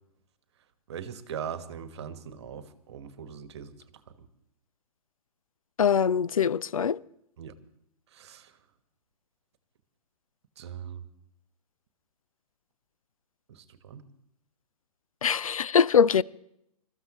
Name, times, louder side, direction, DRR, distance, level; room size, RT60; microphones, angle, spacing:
voice 1, 0.9-3.7 4.2-4.3 7.4-7.5 8.1-8.5 10.6-11.0 13.5-14.0, right 8 dB, 45° right, 1.4 m, -40 dB
voice 2, 5.8-7.0 15.2-16.2, left 7 dB, 65° left, 0.5 m, -22 dB
27.5 x 14.0 x 3.0 m
figure-of-eight pair, 120°, 19 cm